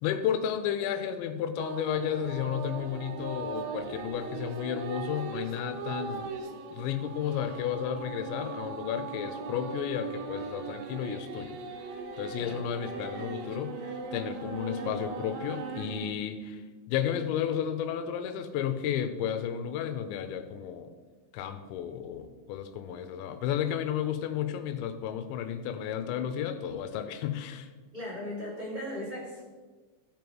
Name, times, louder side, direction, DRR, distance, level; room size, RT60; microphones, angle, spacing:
voice 1, 0.0-6.3 6.7-11.6 12.2-16.6 16.9-21.0 21.3-27.7, left 9 dB, 85° left, 8 dB, 2.8 m, -32 dB
sound 1, 1.6-16.1, right 5 dB, 80° right, 3.1 m, -39 dB
voice 2, 12.3-12.7 27.9-29.4, left 1 dB, 15° right, -6 dB, 1.5 m, -37 dB
15.5 x 5.2 x 4.6 m, 1.4 s
omnidirectional pair, 5.6 m